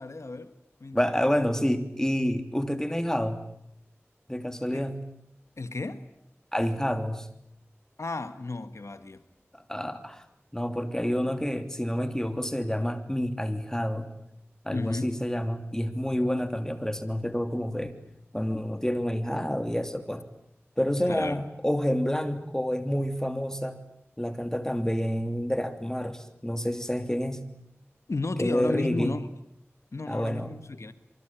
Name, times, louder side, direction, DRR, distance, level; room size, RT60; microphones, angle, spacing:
voice 1, 0.0-1.0 4.7-4.8 5.6-6.0 8.0-9.2 14.7-15.1 21.1-21.4 28.1-29.3 29.9-30.9, left 3 dB, 90° left, 1.5 m, -33 dB
voice 2, 0.9-3.5 4.3-5.0 6.5-7.3 9.5-10.2 10.5-14.1 14.6-17.9 18.3-20.3 20.8-23.8 24.2-27.4 28.4-29.1 30.1-30.5, equal, 10° left, 3.1 m, -28 dB
26.5 x 24.0 x 9.1 m
wide cardioid pair, 50°, 5 cm